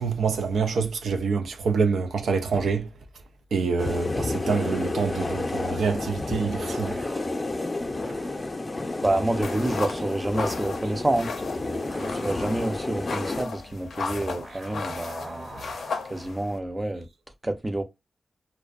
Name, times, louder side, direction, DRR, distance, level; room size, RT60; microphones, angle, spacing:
voice 1, 0.0-2.9 3.5-7.0, right 5 dB, 90° right, 0.4 m, -26 dB
sound 1, 3.8-13.4, left 2 dB, 35° left, 0.5 m, -31 dB
sound 2, 6.5-8.7 9.0-16.6, right 1 dB, 50° right, 1.2 m, -44 dB
voice 2, 9.0-11.3 12.0-15.5 16.1-17.1 17.4-17.8, right 1 dB, 25° right, 0.5 m, -28 dB
sound 3, 9.4-16.6, left 5 dB, 85° left, 0.4 m, -36 dB
2.5 x 2.1 x 2.4 m
cardioid pair, 55°, 0 cm